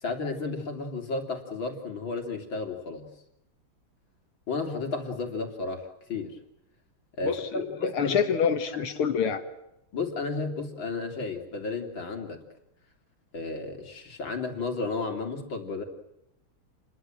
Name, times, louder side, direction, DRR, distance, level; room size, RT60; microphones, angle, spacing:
voice 1, 0.0-3.1 4.5-6.4 7.1-8.2 8.7-8.9 9.9-12.4 13.3-15.8, left 3 dB, 65° left, 4 dB, 3.9 m, -33 dB
voice 2, 7.2-9.4, left 6 dB, 85° left, 8 dB, 2.6 m, -27 dB
29.5 x 22.0 x 7.7 m, 0.83 s
omnidirectional pair, 2.3 m